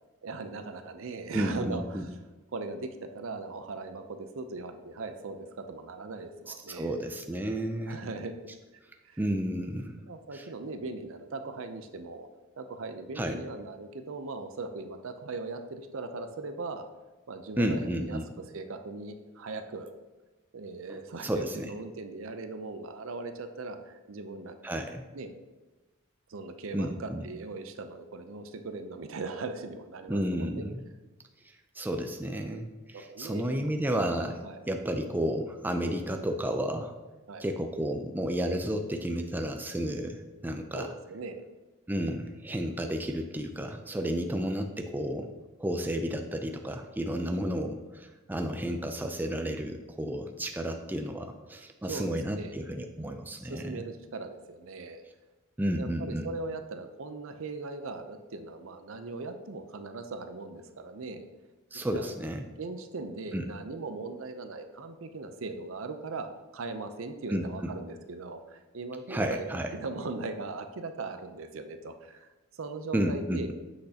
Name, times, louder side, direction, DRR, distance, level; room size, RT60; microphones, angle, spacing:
voice 1, 0.2-2.1 2.5-7.0 7.9-8.3 8.7-9.2 10.1-12.3 12.6-16.9 17.3-19.9 20.5-24.6 25.1-25.3 26.3-30.6 32.9-33.7 34.4-34.6 37.3-37.4 40.7-41.4 51.9-52.6 53.4-55.0 55.7-61.2 61.7-62.2 62.6-72.3 72.6-73.5, right 3 dB, 65° right, 8 dB, 0.6 m, -39 dB
voice 2, 1.3-2.0 6.7-8.0 9.2-10.0 10.3-10.5 13.2-13.4 17.6-18.2 20.9-21.7 24.6-25.1 26.7-27.2 30.1-30.8 31.8-36.9 37.4-40.9 41.9-45.3 45.6-53.8 55.6-56.3 61.7-62.4 63.3-63.5 67.3-67.7 69.1-69.7 72.9-73.5, equal, 10° right, 5 dB, 0.4 m, -32 dB
7.8 x 6.4 x 2.8 m, 1.2 s
head